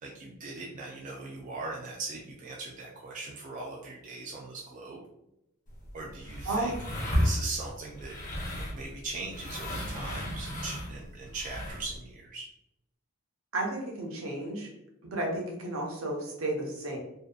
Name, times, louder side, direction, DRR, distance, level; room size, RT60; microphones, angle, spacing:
voice 1, 0.0-5.0 5.9-6.7 7.2-8.4 8.7-12.5, right 3 dB, 35° right, -2 dB, 0.3 m, -40 dB
sound 1, 5.7-12.0, equal, 40° left, 0.7 m, -34 dB
voice 2, 13.5-14.7 15.0-17.0, right 1 dB, 70° right, 0 dB, 0.7 m, -32 dB
2.7 x 2.1 x 2.3 m, 0.85 s
head